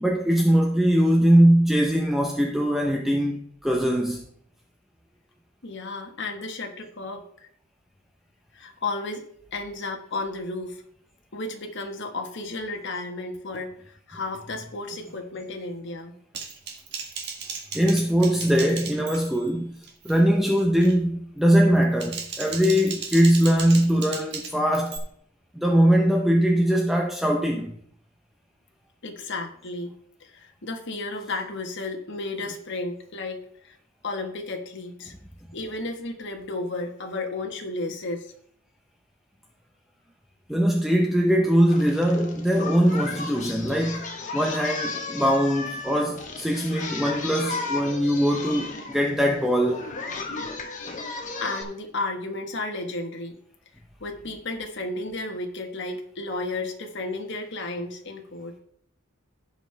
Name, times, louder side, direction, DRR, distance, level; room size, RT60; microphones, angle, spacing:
voice 1, 0.0-4.3 17.7-19.7 20.0-25.0 25.6-27.8 40.5-44.1 44.3-49.9, equal, ahead, 0.7 m, -21 dB
voice 2, 5.6-7.2 8.5-10.8 11.3-16.1 29.0-29.9 30.2-33.8 34.0-35.1 35.5-38.3 51.4-53.4 54.0-58.5, left 2 dB, 60° left, 1.5 m, -33 dB
Typing, 16.3-19.5 19.8-20.2 20.6-21.0 21.8-25.0, right 5 dB, 55° right, 1.6 m, -36 dB
Singing, 41.7-51.6, left 4 dB, 40° left, 1.5 m, -35 dB
15.5 x 5.4 x 3.4 m
head